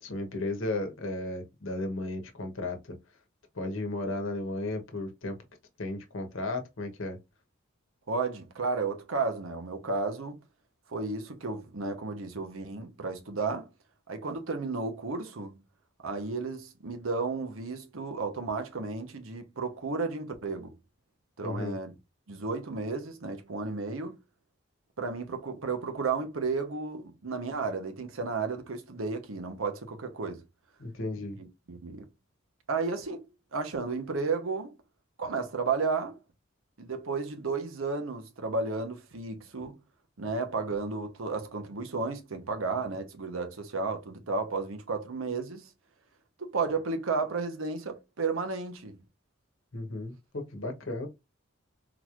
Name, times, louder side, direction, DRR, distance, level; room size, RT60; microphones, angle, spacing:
voice 1, 0.0-2.8 3.5-5.4 5.8-7.2 21.4-21.8 30.8-31.4 49.7-51.1, left 2 dB, 70° left, 0.9 m, -34 dB
voice 2, 8.1-10.4 10.9-13.7 14.1-15.6 16.0-20.7 21.4-21.9 22.3-24.2 25.0-30.4 31.4-32.1 32.7-33.2 33.5-34.7 35.2-36.2 36.8-39.7 40.2-45.7 46.4-49.0, right 4 dB, 80° right, 0.9 m, -33 dB
3.9 x 3.0 x 2.4 m
head